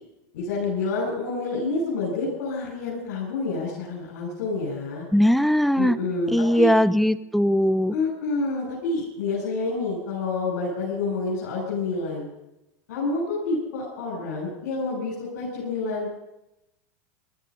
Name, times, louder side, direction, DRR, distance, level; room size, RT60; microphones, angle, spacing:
voice 1, 0.3-5.0 5.8-6.7 7.9-12.3 12.9-16.1, left 3 dB, 85° left, -5 dB, 7.8 m, -28 dB
voice 2, 5.1-6.0 6.3-7.9, equal, ahead, 15 dB, 0.6 m, -20 dB
19.0 x 13.0 x 5.6 m, 0.90 s
supercardioid pair, 130°, 9 cm